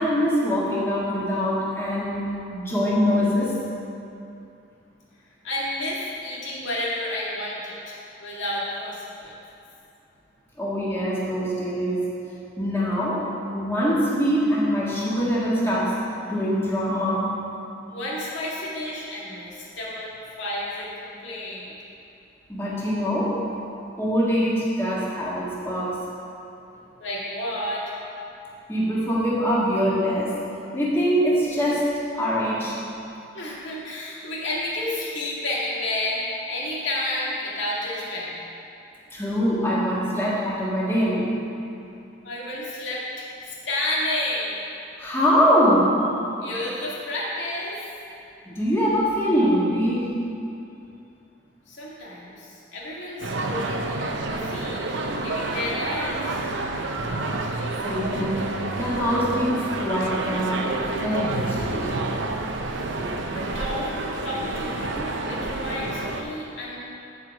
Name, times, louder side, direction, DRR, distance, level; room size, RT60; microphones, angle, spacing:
voice 1, 0.0-3.6 10.6-12.1 12.6-16.0 16.3-17.3 22.5-23.4 24.0-26.0 28.7-30.4 30.7-32.8 39.1-41.3 45.0-45.9 48.5-50.2 57.8-58.5 58.7-61.9, equal, 15° left, -7 dB, 1.7 m, -23 dB
voice 2, 5.4-9.4 17.9-20.1 20.4-21.7 27.0-27.9 33.3-38.4 42.2-44.6 46.4-47.8 51.7-54.9 55.2-56.4 63.3-66.8, left 1 dB, 75° left, -6 dB, 2.1 m, -31 dB
sound 1, 53.2-66.2, right 2 dB, 70° right, 0.7 m, -29 dB
13.5 x 4.8 x 4.9 m, 2.7 s
head